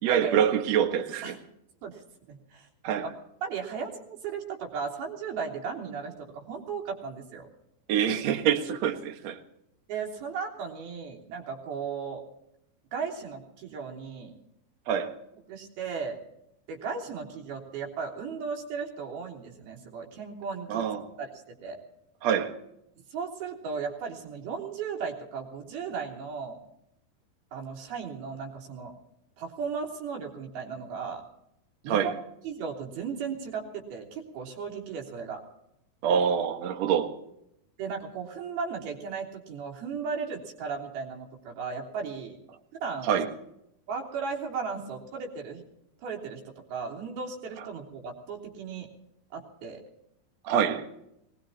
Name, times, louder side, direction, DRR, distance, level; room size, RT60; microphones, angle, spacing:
voice 1, 0.0-1.4 2.8-3.1 7.9-9.4 14.9-15.1 20.7-21.1 22.2-22.5 31.9-32.1 36.0-37.2 43.0-43.3 50.4-50.9, right 8 dB, 55° right, 2.3 m, -25 dB
voice 2, 2.3-2.7 3.0-3.1 3.4-7.5 9.9-12.2 12.9-14.3 15.5-16.2 16.7-20.9 21.1-21.3 21.6-21.8 23.1-26.6 27.5-29.0 29.4-31.2 31.8-32.1 32.4-35.4 37.8-42.4 42.8-43.1 43.9-45.6 46.0-48.9 49.3-49.8, right 5 dB, 80° right, 5.1 m, -36 dB
24.0 x 21.0 x 2.9 m
omnidirectional pair, 4.3 m